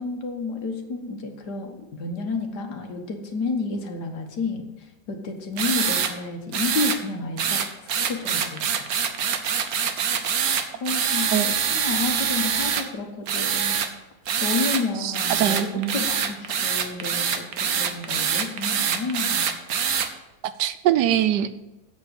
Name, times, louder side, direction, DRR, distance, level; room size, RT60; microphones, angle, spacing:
voice 1, 0.0-7.6 8.0-8.7 10.8-13.9 14.4-19.5, left 3 dB, 80° left, 4 dB, 2.0 m, -30 dB
sound 1, 5.6-6.1 6.5-7.0 7.4-12.8 13.3-13.9 14.3-14.8 15.1-20.1, right 7 dB, 65° right, 1.4 m, -24 dB
voice 2, 15.0-15.9 20.6-21.6, right 11 dB, 85° right, 12 dB, 1.3 m, -23 dB
8.2 x 7.5 x 8.1 m, 1.0 s
omnidirectional pair, 1.7 m